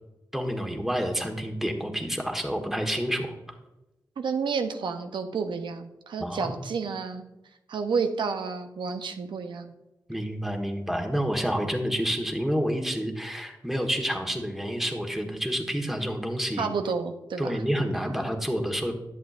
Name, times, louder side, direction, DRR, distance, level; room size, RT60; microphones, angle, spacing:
voice 1, 0.3-3.3 6.2-6.6 10.1-16.7 17.4-18.9, equal, 5° right, 3 dB, 1.3 m, -29 dB
voice 2, 4.2-7.2 7.7-9.7 16.6-17.6, right 5 dB, 85° right, 7 dB, 0.6 m, -30 dB
11.0 x 7.4 x 2.5 m, 0.96 s
cardioid pair, 50°, 8 cm